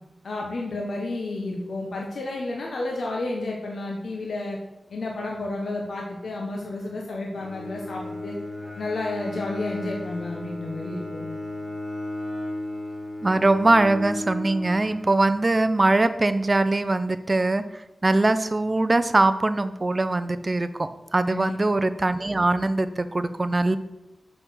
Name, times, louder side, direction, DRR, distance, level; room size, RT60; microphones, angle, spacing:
voice 1, 0.2-4.6 4.9-8.4 8.8-11.4 21.3-21.6, left 2 dB, 75° left, -1 dB, 1.3 m, -31 dB
Bowed string instrument, 7.3-15.6, left 1 dB, 5° left, 3.4 m, -35 dB
voice 2, 13.2-23.8, right 2 dB, 35° right, 12 dB, 0.7 m, -22 dB
6.3 x 6.3 x 6.4 m, 0.92 s
cardioid pair, 60°, 0 cm